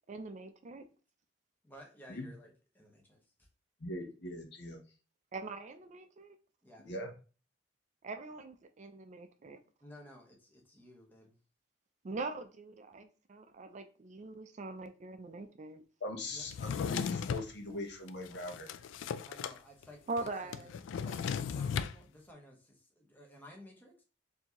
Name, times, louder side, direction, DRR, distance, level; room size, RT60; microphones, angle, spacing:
voice 1, 0.1-0.8 5.3-6.3 8.0-9.6 12.0-15.8 20.1-20.6, right 3 dB, 40° right, 0.4 m, -42 dB
voice 2, 1.6-3.5 6.6-7.0 9.8-11.4 16.3-16.5 19.3-20.7 20.9-24.0, equal, 10° left, 1.0 m, -55 dB
voice 3, 3.8-4.8 6.8-7.1 16.0-18.8, left 1 dB, 65° left, 0.9 m, -41 dB
Drawer open or close, 16.5-17.5 18.1-19.6 19.8-19.9 20.2-22.0, left 7 dB, 80° left, 0.3 m, -36 dB
4.4 x 2.8 x 2.9 m
head